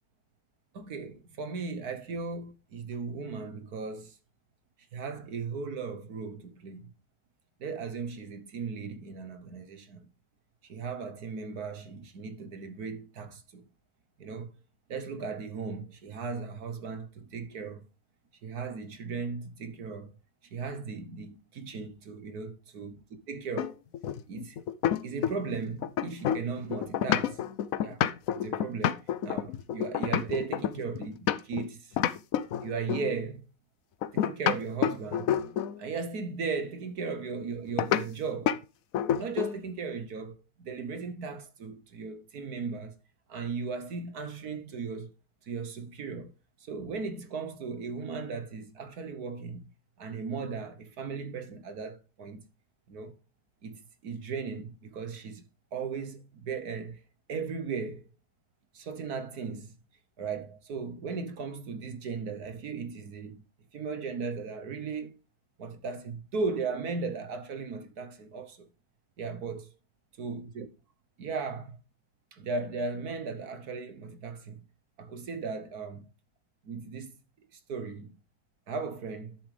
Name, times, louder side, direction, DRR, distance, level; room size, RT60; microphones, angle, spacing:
voice 1, 0.7-4.2 4.9-6.9 7.6-10.1 10.6-13.7 14.2-14.5 14.9-17.9 18.4-20.1 20.4-23.0 23.3-23.8 24.3-24.6 25.0-27.4 27.8-28.0 28.3-32.0 32.6-33.4 34.1-35.4 35.8-38.6 39.2-42.9 43.3-45.1 45.4-46.3 46.6-49.6 50.0-52.4 52.9-53.1 53.6-57.0 57.3-58.0 58.7-59.7 60.2-63.4 63.7-65.2 65.6-68.7 69.2-69.7 70.2-70.7 71.2-71.8 72.3-74.6 75.0-76.1 76.7-77.1 77.5-78.2 78.7-79.4, right 4 dB, 55° right, 1.4 m, -37 dB
sound 1, 23.6-25.5 25.8-31.6 32.0-33.1 34.0-35.8 37.8-38.0 38.5-38.6 38.9-39.6, left 10 dB, 75° left, 0.8 m, -28 dB
12.0 x 7.3 x 3.3 m
omnidirectional pair, 2.1 m